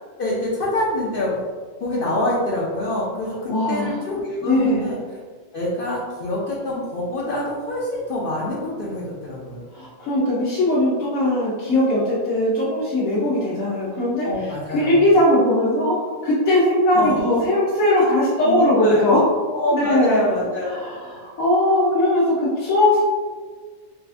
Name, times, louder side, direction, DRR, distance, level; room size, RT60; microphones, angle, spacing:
voice 1, 0.2-1.4 1.8-5.0 5.5-9.6 14.2-15.0 16.9-17.5 17.9-18.1 18.4-19.1 19.5-21.1, left 1 dB, 60° left, -6 dB, 0.6 m, -26 dB
voice 2, 3.5-4.0 4.4-4.9 9.7-16.0 16.2-19.2 19.7-20.2 20.7-23.0, left 1 dB, 80° left, -9 dB, 1.2 m, -19 dB
4.0 x 2.4 x 2.4 m, 1.5 s
omnidirectional pair, 1.4 m